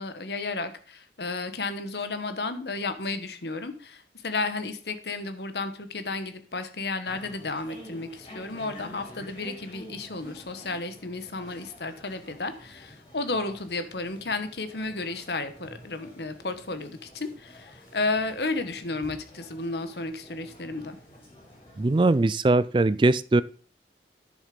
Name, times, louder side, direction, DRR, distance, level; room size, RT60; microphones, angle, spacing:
voice 1, 0.0-21.0, left 3 dB, 70° left, 10 dB, 1.2 m, -33 dB
sound 1, 7.0-22.3, equal, 30° left, 6.1 m, -49 dB
voice 2, 21.8-23.4, right 2 dB, 30° right, 17 dB, 0.4 m, -21 dB
10.0 x 6.9 x 5.2 m, 0.42 s
head